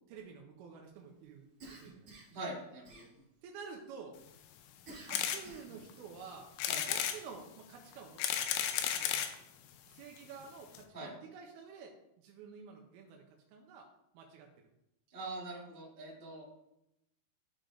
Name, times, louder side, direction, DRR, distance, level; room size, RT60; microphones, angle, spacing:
voice 1, 0.1-2.1 3.4-4.2 4.9-6.5 6.9-9.3 9.9-13.2 13.5-13.9 14.1-14.5, right 5 dB, 80° right, 1 dB, 2.5 m, -50 dB
Cough, 1.6-2.4 2.8-3.5 4.9-5.9, right 2 dB, 45° right, 1.9 m, -52 dB
voice 2, 2.3-3.1 6.7-6.9 10.9-11.1 15.1-16.4, right 2 dB, 25° right, -7 dB, 1.3 m, -43 dB
sound 1, 5.1-5.4 5.9-6.0 6.6-7.2 7.9-9.4 10.2-10.3 10.4-10.5 10.7-10.8, left 9 dB, 80° left, 2.5 m, -33 dB
11.0 x 3.8 x 3.4 m, 0.85 s
omnidirectional pair, 4.7 m